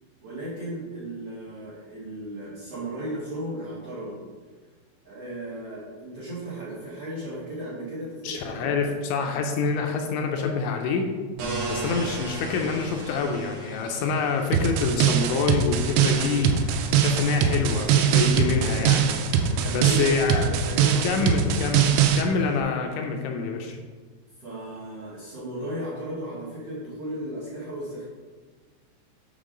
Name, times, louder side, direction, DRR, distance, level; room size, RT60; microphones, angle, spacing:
voice 1, 0.2-4.2 5.0-8.7 19.5-21.4 24.4-28.0, right 1 dB, 55° right, -8 dB, 1.7 m, -35 dB
voice 2, 8.2-11.0 11.7-16.5 16.9-19.2 19.7-20.5 21.0-23.8, left 5 dB, 80° left, 3 dB, 2.8 m, -26 dB
sound 1, 11.4-22.6, right 2 dB, 75° right, 2.2 m, -39 dB
sound 2, 14.5-22.2, right 8 dB, 90° right, 3.2 m, -22 dB
8.2 x 6.1 x 3.8 m, 1.5 s
omnidirectional pair, 5.7 m